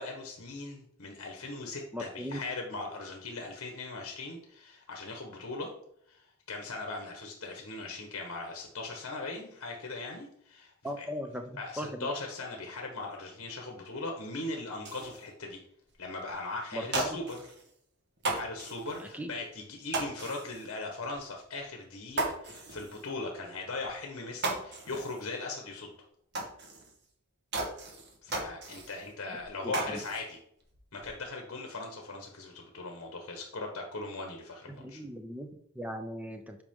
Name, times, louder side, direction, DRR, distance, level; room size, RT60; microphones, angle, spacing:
voice 1, 0.0-5.7 6.1-11.0 11.6-15.6 16.0-17.4 18.3-25.9 28.2-30.4 30.9-35.0, left 2 dB, 65° left, 2 dB, 1.1 m, -39 dB
voice 2, 1.9-2.4 10.8-12.1 16.7-17.2 19.0-19.3 29.6-30.0 34.8-36.6, equal, 5° right, 5 dB, 0.6 m, -39 dB
sound 1, 14.8-15.2 15.9-16.0 16.3-16.4 16.7-17.7 18.2-19.1 19.9-20.7 21.1-21.2 21.6-21.7 22.1-23.1 23.8-23.9 24.2-25.3 25.6-25.7 26.3-27.0 27.5-29.1 29.4-30.2 30.6-31.2, right 2 dB, 50° right, 1.3 m, -36 dB
8.2 x 4.8 x 3.7 m, 0.70 s
head